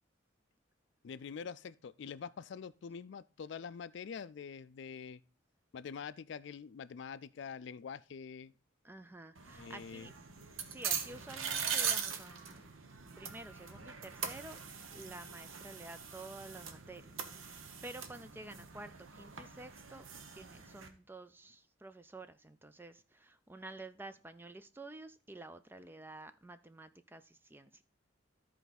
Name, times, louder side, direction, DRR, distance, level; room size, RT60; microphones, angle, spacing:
voice 1, 1.0-5.2 5.7-8.5 9.5-10.1, left 6 dB, 60° left, 0.3 m, -45 dB
voice 2, 8.8-10.1 10.7-12.6 13.2-14.6 14.9-20.1 20.3-27.8, right 2 dB, 10° right, 0.3 m, -50 dB
sound 1, 9.3-20.9, right 7 dB, 85° right, 1.0 m, -41 dB
13.5 x 4.5 x 4.0 m
head